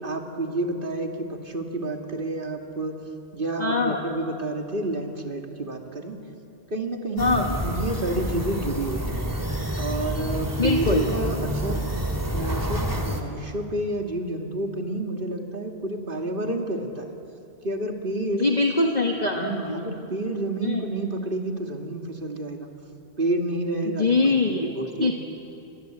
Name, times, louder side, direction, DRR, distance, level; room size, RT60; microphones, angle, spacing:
voice 1, 0.0-2.9 3.3-6.2 6.7-9.3 9.8-11.8 12.3-17.1 17.6-18.5 19.3-22.7 23.2-25.1, right 2 dB, 55° right, 2 dB, 2.6 m, -29 dB
voice 2, 3.6-4.0 7.2-7.6 10.6-11.0 18.4-19.8 20.6-20.8 24.0-24.7 25.0-25.1, left 3 dB, 40° left, 1 dB, 1.6 m, -23 dB
sound 1, 7.2-13.2, equal, 15° right, 2.4 m, -28 dB
29.5 x 24.5 x 8.2 m, 2.8 s
omnidirectional pair, 1.1 m